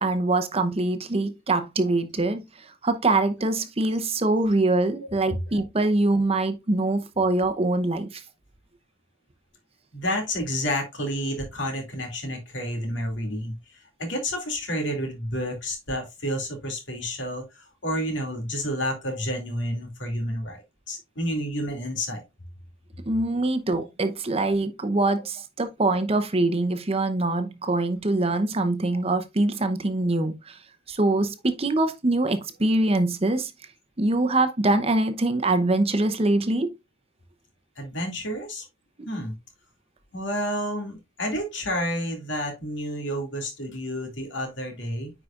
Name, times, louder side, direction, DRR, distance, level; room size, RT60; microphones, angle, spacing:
voice 1, 0.0-8.2 23.1-30.6 30.9-33.5 34.0-36.7, right 2 dB, 30° right, 0.8 m, -24 dB
voice 2, 9.9-20.6 20.9-22.2 37.8-38.7 39.1-39.4 40.1-45.1, equal, 70° left, 2.5 m, -30 dB
9.5 x 5.0 x 2.5 m
head